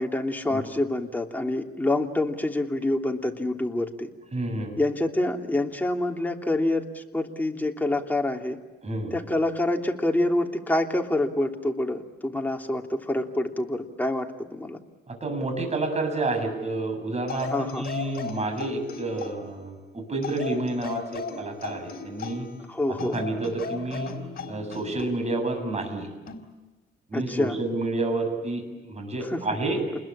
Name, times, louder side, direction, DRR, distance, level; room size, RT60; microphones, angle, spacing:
voice 1, 0.0-4.1 4.8-8.6 9.1-14.8 17.5-17.9 22.7-23.2 27.1-27.6 29.2-29.4, left 1 dB, 10° left, 2 dB, 3.0 m, -27 dB
voice 2, 4.3-4.8 8.8-9.1 15.1-22.5 22.9-24.1 24.5-26.1 27.1-29.8, right 2 dB, 35° right, 5 dB, 7.5 m, -29 dB
sound 1, 17.3-19.5 20.2-22.6 23.0-25.2 26.3-26.5, left 5 dB, 50° left, 4.5 m, -37 dB
29.0 x 21.5 x 8.7 m, 1.2 s
cardioid pair, 90°, 20 cm